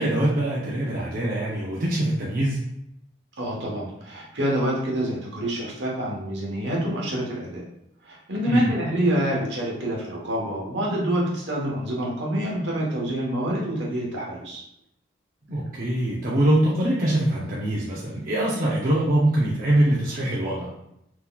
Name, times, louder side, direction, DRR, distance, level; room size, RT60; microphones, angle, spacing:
voice 1, 0.0-2.6 8.5-8.7 15.5-20.7, right 1 dB, 50° right, -6 dB, 0.6 m, -23 dB
voice 2, 3.4-7.6 8.0-14.6, equal, 75° right, -3 dB, 1.1 m, -27 dB
3.8 x 2.9 x 2.3 m, 0.78 s
head